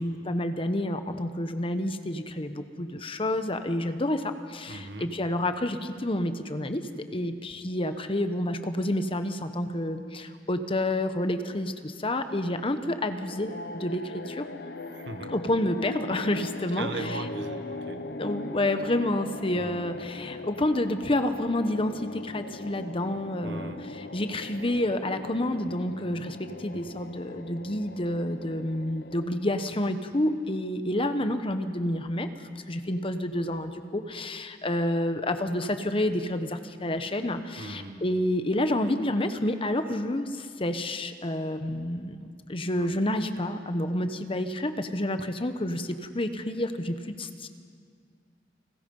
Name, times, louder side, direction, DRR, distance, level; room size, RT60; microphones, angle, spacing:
voice 1, 0.0-14.4 15.3-17.2 18.2-32.3 32.7-47.5, left 1 dB, 30° left, 9 dB, 1.1 m, -29 dB
voice 2, 4.7-5.2 14.9-15.3 16.8-18.1 19.6-19.9 23.4-23.9 37.6-38.0 42.7-42.9, right 2 dB, 80° right, 7 dB, 1.5 m, -39 dB
sound 1, 13.1-29.7, left 2 dB, 65° left, 0.9 m, -40 dB
30.0 x 19.5 x 5.5 m, 2.2 s
head